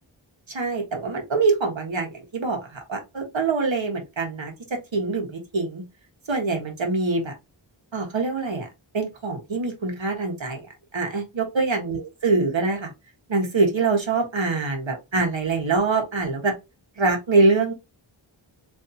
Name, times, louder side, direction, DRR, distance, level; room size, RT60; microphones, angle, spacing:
voice 1, 0.5-4.5 4.9-5.8 6.3-7.3 7.9-8.7 8.9-10.6 10.9-12.9 13.3-16.5 17.0-17.7, right 3 dB, 65° right, 2 dB, 1.5 m, -24 dB
4.1 x 3.1 x 2.7 m, 0.24 s
wide cardioid pair, 50°, 49 cm